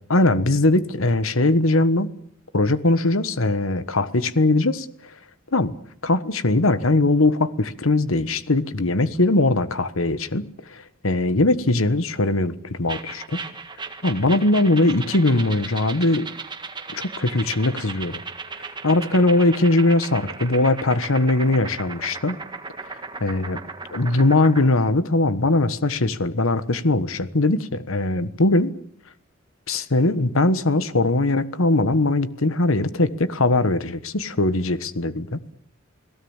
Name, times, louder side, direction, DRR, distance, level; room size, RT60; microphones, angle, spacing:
voice 1, 0.1-2.1 2.5-5.1 5.5-5.7 6.0-13.4 14.0-16.3 16.9-18.2 18.8-22.4 23.2-23.6 23.9-28.7 29.7-35.4, left 2 dB, 80° left, 13 dB, 1.4 m, -20 dB
sound 1, 12.9-24.7, right 4 dB, 20° right, 1.7 m, -36 dB
29.5 x 18.5 x 7.3 m, 0.67 s
head